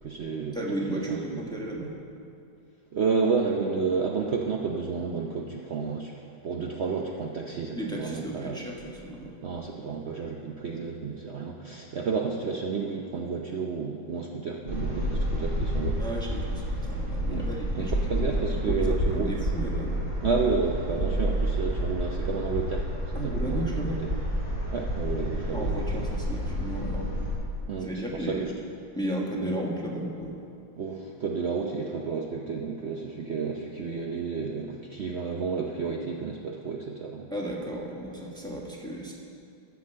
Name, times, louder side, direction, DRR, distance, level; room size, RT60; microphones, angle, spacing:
voice 1, 0.0-0.6 0.9-1.4 2.9-6.1 6.4-8.6 9.4-16.0 17.3-17.4 17.8-19.3 20.2-22.9 23.2-23.8 24.7-26.1 27.7-28.5 29.4-29.6 30.8-37.3, right 5 dB, 75° right, 0 dB, 0.6 m, -31 dB
voice 2, 0.5-1.9 7.7-9.4 16.0-20.0 23.1-24.0 25.5-27.1 27.8-28.5 29.0-30.4 37.3-39.1, right 1 dB, 5° left, -2 dB, 1.0 m, -34 dB
sound 1, 14.7-27.3, equal, 40° right, 3.6 m, -29 dB
11.5 x 6.0 x 7.8 m, 2.7 s
omnidirectional pair, 2.1 m